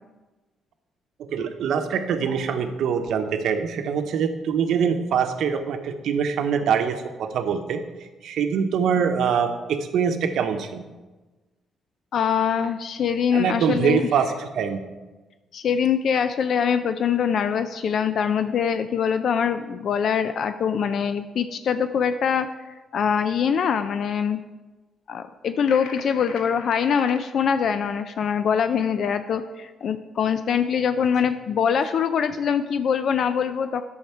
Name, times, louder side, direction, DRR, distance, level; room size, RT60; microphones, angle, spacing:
voice 1, 1.3-7.8 8.2-10.8 13.3-14.8, right 7 dB, 75° right, 7 dB, 0.8 m, -24 dB
voice 2, 12.1-14.0 15.5-24.4 25.1-33.8, left 7 dB, 60° left, 10 dB, 0.4 m, -23 dB
sound 1, 25.6-27.2, left 5 dB, 90° left, 0.9 m, -40 dB
9.1 x 6.3 x 4.5 m, 1.2 s
cardioid pair, 90°, 0 cm